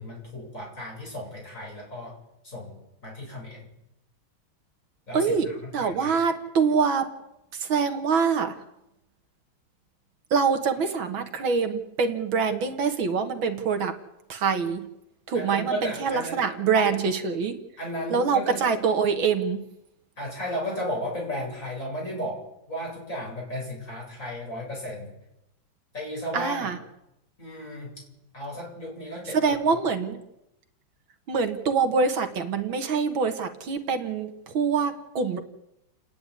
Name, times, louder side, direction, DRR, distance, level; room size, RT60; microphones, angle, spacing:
voice 1, 0.0-2.1 2.4-3.7 5.1-6.2 15.3-16.5 16.9-17.0 17.8-18.6 20.2-22.4 22.7-25.1 25.9-26.7 27.4-27.9 28.3-29.4, equal, 35° left, -3 dB, 8.4 m, -34 dB
voice 2, 5.1-5.5 5.7-7.1 7.5-8.6 10.3-13.9 14.3-14.9 15.3-17.6 18.1-19.6 26.3-26.8 29.3-30.2 31.3-35.4, right 5 dB, 70° right, 7 dB, 2.3 m, -25 dB
29.5 x 10.0 x 9.9 m, 0.87 s
omnidirectional pair, 2.2 m